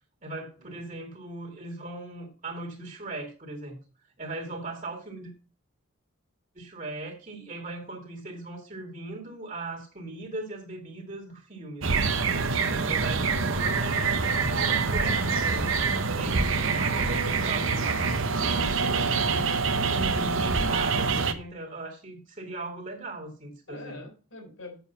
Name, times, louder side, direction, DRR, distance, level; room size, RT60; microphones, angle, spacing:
voice 1, 0.2-3.8 4.2-5.3 6.5-12.2 12.6-15.7 16.2-19.6 19.9-24.0, right 2 dB, 35° right, 2.3 m, -39 dB
sound 1, 11.8-21.3, right 4 dB, 70° right, 1.0 m, -25 dB
voice 2, 12.3-13.1 23.7-24.8, left 2 dB, 70° left, 4.9 m, -45 dB
7.8 x 7.1 x 5.5 m
head